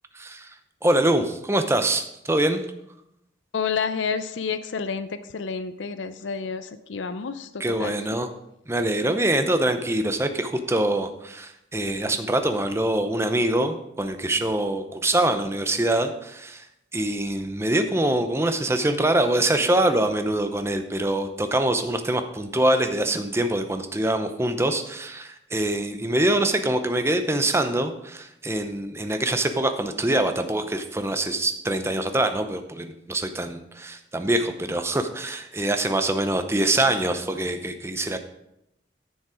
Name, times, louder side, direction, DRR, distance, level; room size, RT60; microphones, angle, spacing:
voice 1, 0.1-0.5 0.8-2.6 7.6-8.3 8.7-16.7 16.9-38.2, right 1 dB, 15° right, 7 dB, 0.7 m, -24 dB
voice 2, 3.5-8.0, left 5 dB, 85° left, 11 dB, 0.5 m, -29 dB
10.0 x 7.0 x 4.9 m, 0.82 s
head